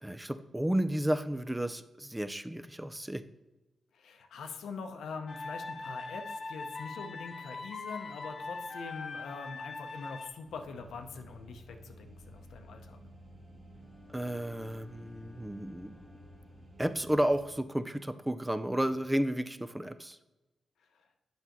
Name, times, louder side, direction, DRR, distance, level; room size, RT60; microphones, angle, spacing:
voice 1, 0.0-3.2 14.1-16.0 16.8-20.2, right 1 dB, 10° right, 11 dB, 0.4 m, -32 dB
voice 2, 3.9-13.0 20.9-21.1, left 4 dB, 90° left, 6 dB, 0.7 m, -43 dB
sound 1, 5.3-10.3, left 3 dB, 55° left, 0.7 m, -41 dB
sound 2, 10.4-17.5, equal, 40° right, 1.5 m, -54 dB
Bowed string instrument, 13.7-16.9, left 5 dB, 25° left, 0.8 m, -58 dB
8.0 x 5.5 x 3.0 m, 1.0 s
cardioid pair, 85°, 0 cm